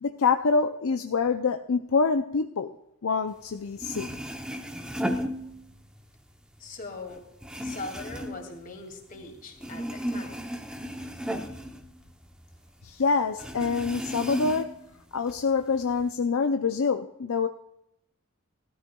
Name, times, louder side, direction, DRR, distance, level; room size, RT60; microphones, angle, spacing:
voice 1, 0.0-2.7 3.0-4.2 12.8-14.8 15.1-17.5, left 4 dB, 65° left, 6 dB, 0.5 m, -26 dB
sound 1, 3.5-3.6 3.8-6.0 6.3-9.3 9.6-12.6 12.8-12.9 13.4-14.9 15.3-16.0, equal, 5° right, 0.8 m, -35 dB
voice 2, 6.6-7.2 7.6-10.4, left 3 dB, 40° left, 2 dB, 2.4 m, -40 dB
18.0 x 13.0 x 2.3 m, 0.84 s
head